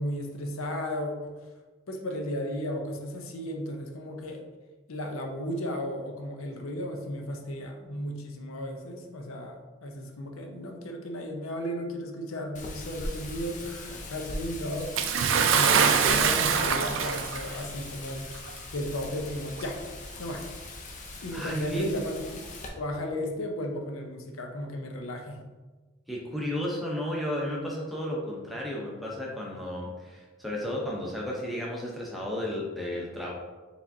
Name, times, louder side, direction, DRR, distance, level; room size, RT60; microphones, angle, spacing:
voice 1, 0.0-1.4 1.9-4.4 4.9-14.9 15.3-18.4 18.7-19.8 20.2-20.4 21.2-22.4 22.8-25.4, equal, 85° left, 3 dB, 0.6 m, -34 dB
Wind, 12.5-22.7, left 2 dB, 40° left, 0.5 m, -41 dB
Bathtub (filling or washing) / Splash splatter, 15.0-17.6 18.5-18.6 19.6-19.7, right 6 dB, 65° right, 0.4 m, -23 dB
voice 2, 21.3-21.8 26.1-33.3, left 1 dB, ahead, -3 dB, 0.7 m, -33 dB
4.8 x 3.3 x 2.7 m, 1.3 s
head